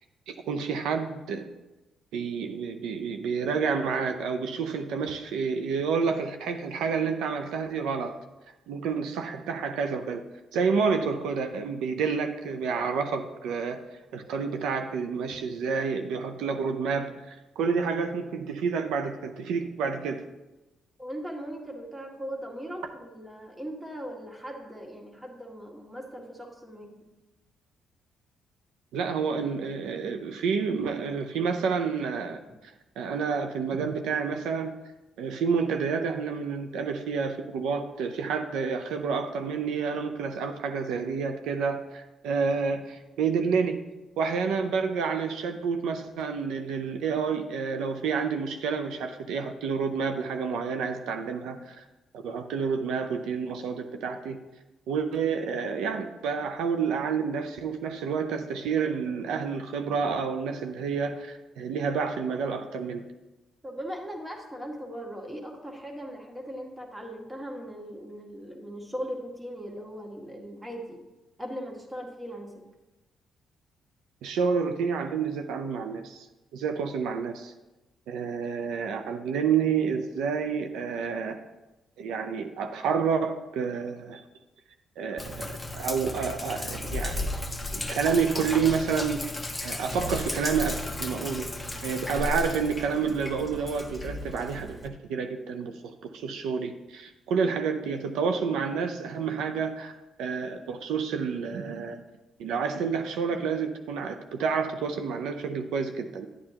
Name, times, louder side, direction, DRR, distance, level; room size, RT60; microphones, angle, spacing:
voice 1, 0.3-1.4 2.1-8.1 8.7-10.2 10.5-13.8 14.1-20.2 28.9-34.7 35.2-43.8 44.2-51.8 52.1-54.4 54.9-63.0 74.2-76.3 76.5-77.5 78.1-81.4 82.0-84.2 85.0-85.5 85.7-87.3 87.7-89.2 89.6-91.5 91.8-95.7 96.0-102.0 102.4-106.3, right 5 dB, 85° right, 7 dB, 0.6 m, -29 dB
voice 2, 21.0-27.0 63.6-71.0 71.4-72.6, equal, 10° right, 1 dB, 1.8 m, -39 dB
Sink (filling or washing), 85.2-94.9, left 1 dB, 10° left, 0.9 m, -34 dB
10.5 x 8.8 x 2.9 m, 1.0 s
cardioid pair, 90°, 0 cm